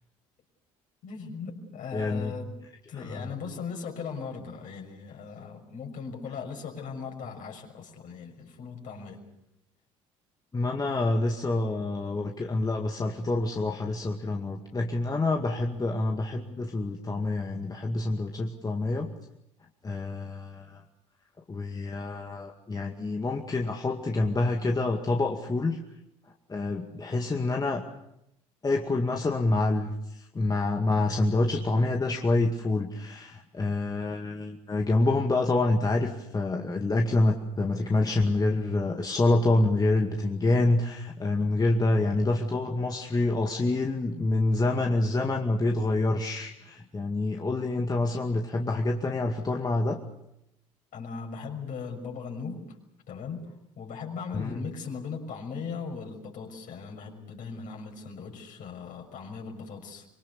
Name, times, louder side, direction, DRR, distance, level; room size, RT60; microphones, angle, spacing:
voice 1, 1.0-2.6 2.9-9.2 50.9-52.8 53.1-60.1, left 5 dB, 50° left, 2 dB, 6.5 m, -38 dB
voice 2, 1.9-2.3 3.0-3.3 10.5-19.1 19.8-20.8 21.5-25.8 26.5-27.8 28.6-50.0 54.3-54.6, left 2 dB, 25° left, 2 dB, 2.2 m, -27 dB
25.5 x 24.0 x 7.1 m, 0.84 s
figure-of-eight pair, 55°, 17 cm